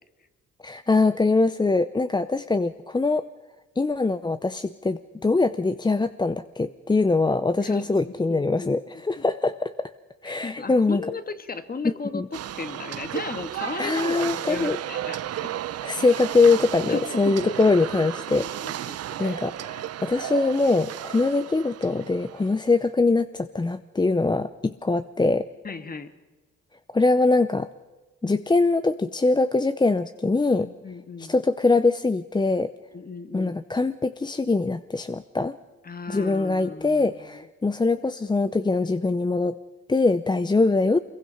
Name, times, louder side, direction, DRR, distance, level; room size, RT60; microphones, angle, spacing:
voice 1, 0.6-3.2 3.8-9.9 10.2-11.0 12.1-12.3 13.8-14.8 15.8-18.5 19.2-25.5 26.9-27.7 28.2-30.7 31.2-32.7 33.3-35.6 36.1-39.6 39.9-41.0, left 3 dB, 15° left, 12 dB, 0.6 m, -23 dB
voice 2, 7.6-8.8 9.2-9.3 10.2-15.5 16.9-17.8 18.4-19.4 25.6-26.1 30.6-31.4 32.9-33.6 35.8-37.5, left 4 dB, 30° left, 10 dB, 1.6 m, -36 dB
sound 1, 12.3-22.7, right 11 dB, 55° right, 0.7 m, -34 dB
25.0 x 22.5 x 5.6 m, 1.2 s
cardioid pair, 90°, 30 cm